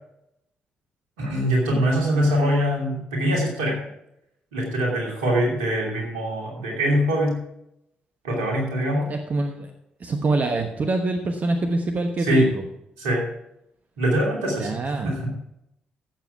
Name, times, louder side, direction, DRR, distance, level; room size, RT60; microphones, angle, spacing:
voice 1, 1.2-3.8 4.5-7.4 8.2-9.1 12.2-12.5 13.0-13.2 14.0-14.7 15.0-15.3, equal, 75° right, -1 dB, 2.8 m, -23 dB
voice 2, 1.7-2.3 9.1-9.7 10.0-12.6 14.6-15.2, right 2 dB, 40° right, 5 dB, 1.1 m, -26 dB
15.0 x 7.2 x 4.6 m, 0.82 s
figure-of-eight pair, 40°, 4 cm